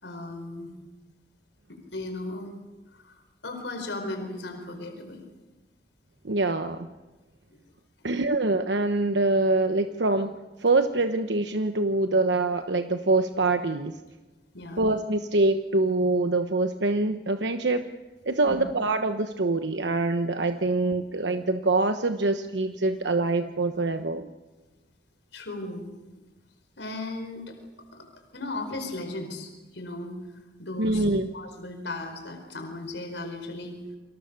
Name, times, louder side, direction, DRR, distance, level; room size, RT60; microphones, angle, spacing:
voice 1, 0.0-0.7 1.7-2.5 2.9-5.2 14.5-14.8 18.4-18.6 25.3-25.9 26.8-27.6 27.9-28.0 28.3-30.1 30.6-31.0 31.3-33.8, left 2 dB, 80° left, 5 dB, 4.9 m, -36 dB
voice 2, 6.2-6.9 8.0-10.3 10.6-14.0 14.8-17.8 18.3-24.3 30.8-31.3, right 2 dB, 75° right, 8 dB, 1.1 m, -25 dB
29.0 x 25.5 x 6.9 m, 1.2 s
head